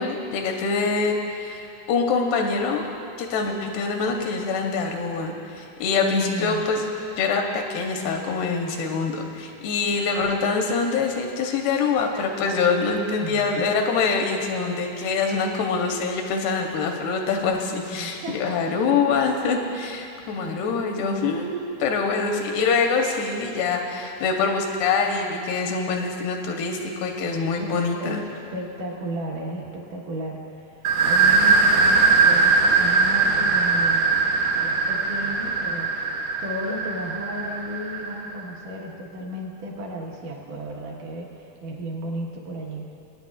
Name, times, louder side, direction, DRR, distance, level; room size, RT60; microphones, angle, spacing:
voice 1, 0.0-1.6 1.9-2.8 3.2-6.9 7.2-28.2, left 4 dB, 85° left, 2 dB, 2.8 m, -24 dB
voice 2, 6.0-6.7 13.2-13.7 17.9-18.8 20.4-20.5 27.6-28.2 28.5-36.2 36.4-42.8, equal, 60° right, -2 dB, 2.5 m, -34 dB
sound 1, 30.8-38.3, right 4 dB, 80° right, 1.8 m, -20 dB
23.5 x 9.3 x 2.4 m, 2.7 s
omnidirectional pair, 4.6 m